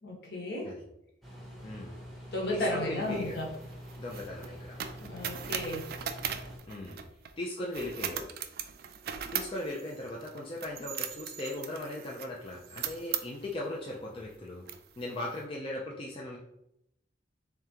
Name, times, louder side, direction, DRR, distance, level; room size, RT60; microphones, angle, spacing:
voice 1, 0.0-0.7 2.3-3.5 5.0-5.8, left 1 dB, 60° left, -2 dB, 1.2 m, -34 dB
sound 1, 1.2-6.6, equal, ahead, 0.9 m, -46 dB
voice 2, 1.6-2.0 2.5-3.4 4.0-4.7 6.7-7.0 7.4-8.3 9.3-14.6 15.0-16.4, left 1 dB, 30° left, -4 dB, 0.5 m, -38 dB
sound 2, 3.1-7.3 7.7-13.6 14.2-14.3 14.7-15.3, right 9 dB, 55° right, 0.3 m, -39 dB
3.6 x 3.5 x 2.9 m, 0.79 s
head